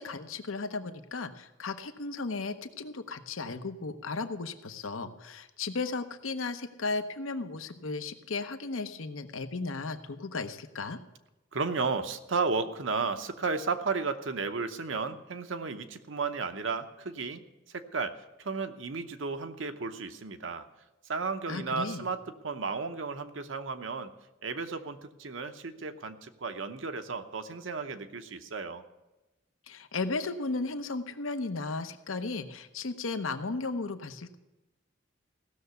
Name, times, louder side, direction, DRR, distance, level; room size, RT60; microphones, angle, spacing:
voice 1, 0.0-11.0 21.5-22.0 29.7-34.4, left 3 dB, 85° left, 9 dB, 0.9 m, -35 dB
voice 2, 11.5-17.4 17.7-20.7 21.0-24.1 24.4-28.8, right 4 dB, 75° right, 8 dB, 0.9 m, -33 dB
16.0 x 6.7 x 8.1 m, 1.0 s
head